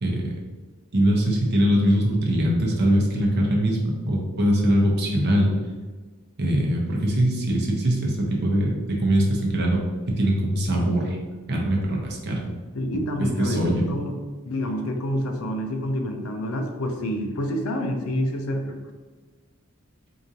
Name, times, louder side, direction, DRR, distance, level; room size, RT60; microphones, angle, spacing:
voice 1, 0.9-3.8 4.1-5.5 6.4-9.8 10.1-11.2 11.5-12.4 13.2-13.8, equal, 50° right, -1 dB, 0.8 m, -22 dB
voice 2, 12.7-14.1 14.5-18.8, equal, 70° left, 4 dB, 0.5 m, -28 dB
4.8 x 2.5 x 2.7 m, 1.4 s
head